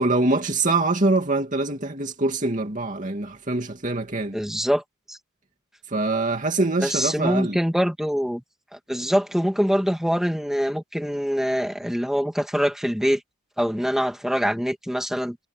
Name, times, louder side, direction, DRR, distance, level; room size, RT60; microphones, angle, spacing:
voice 1, 0.0-4.4 5.9-7.6, right 2 dB, 35° right, 2.6 m, -24 dB
voice 2, 4.3-4.8 5.1-5.2 6.8-8.4 8.7-13.2 13.6-15.4, equal, ahead, 2.4 m, -24 dB
head